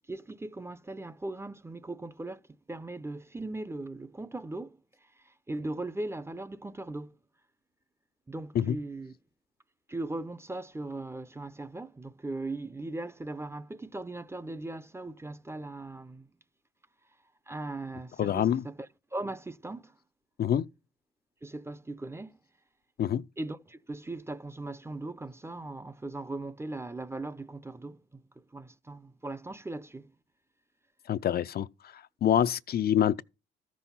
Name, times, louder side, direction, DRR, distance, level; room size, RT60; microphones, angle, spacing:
voice 1, 0.1-2.4 2.7-4.8 5.2-7.1 8.3-9.1 9.9-16.3 17.5-19.9 21.4-22.4 23.4-28.2 28.5-30.1, right 2 dB, 15° right, 0.6 m, -39 dB
voice 2, 18.2-18.6 20.4-20.7 23.0-23.2 31.1-31.7 32.2-33.2, left 10 dB, 50° left, 0.5 m, -26 dB
13.5 x 6.2 x 5.6 m
cardioid pair, 90°, 20 cm